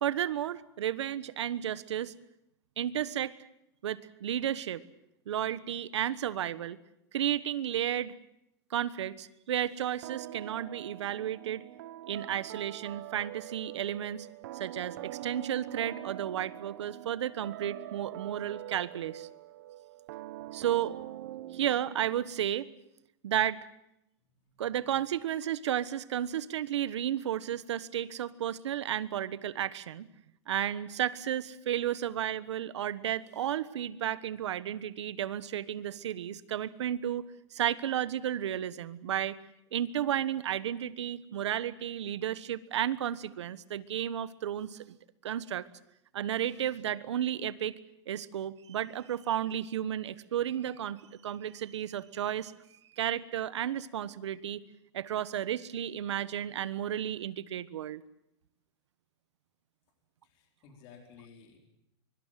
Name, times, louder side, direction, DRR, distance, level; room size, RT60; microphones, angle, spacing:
voice 1, 0.0-2.1 2.8-3.4 3.8-4.8 5.3-6.8 7.1-8.1 8.7-11.6 12.1-14.3 14.5-19.3 20.5-21.0 21.5-22.7 23.2-23.6 24.6-30.1 30.5-39.4 39.7-45.0 45.2-45.7 46.1-47.8 48.1-52.5 53.0-54.6 54.9-58.0, right 10 dB, 85° right, 16 dB, 1.4 m, -33 dB
sound 1, 10.0-22.4, right 14 dB, 50° right, 1.0 m, -44 dB
voice 2, 24.4-24.9 60.2-61.6, left 6 dB, 30° left, 3 dB, 4.6 m, -56 dB
24.0 x 24.0 x 7.6 m, 0.79 s
supercardioid pair, 175°, 14 cm